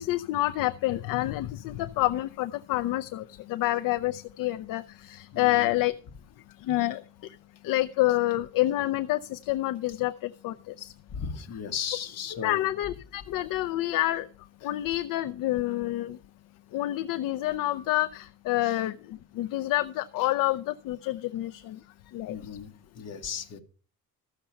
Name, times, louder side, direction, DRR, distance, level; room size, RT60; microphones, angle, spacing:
voice 1, 0.0-5.9 6.6-7.0 7.6-10.9 12.4-14.3 14.6-16.2 16.7-19.0 19.4-21.8 22.1-22.3, left 16 dB, 65° left, 11 dB, 0.6 m, -28 dB
voice 2, 5.3-5.8 11.1-12.7 18.6-18.8 22.3-23.6, left 7 dB, 45° left, 6 dB, 1.3 m, -36 dB
14.0 x 6.7 x 5.7 m, 0.41 s
cardioid pair, 170°, 36 cm